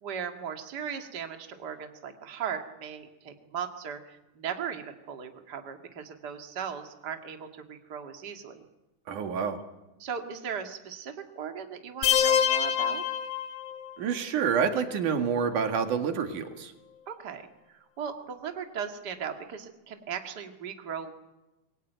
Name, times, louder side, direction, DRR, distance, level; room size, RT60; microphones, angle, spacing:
voice 1, 0.0-8.6 10.0-13.1 17.1-21.1, right 7 dB, 35° right, 5 dB, 2.4 m, -38 dB
voice 2, 9.1-9.6 14.0-16.7, right 6 dB, 90° right, 6 dB, 3.5 m, -28 dB
sound 1, 12.0-14.0, left 9 dB, 80° left, 3.3 m, -25 dB
27.0 x 22.5 x 9.3 m, 1.0 s
omnidirectional pair, 3.5 m